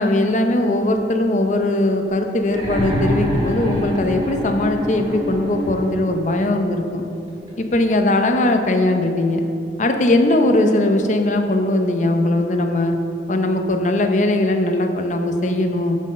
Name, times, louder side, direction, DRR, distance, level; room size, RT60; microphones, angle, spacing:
voice 1, 0.0-7.0 7.6-9.5 9.8-13.0 13.3-16.0, left 1 dB, 45° left, 5 dB, 0.7 m, -19 dB
sound 1, 2.4-6.3 7.5-7.6, equal, 25° right, 2.0 m, -25 dB
10.5 x 5.5 x 5.3 m, 2.9 s
head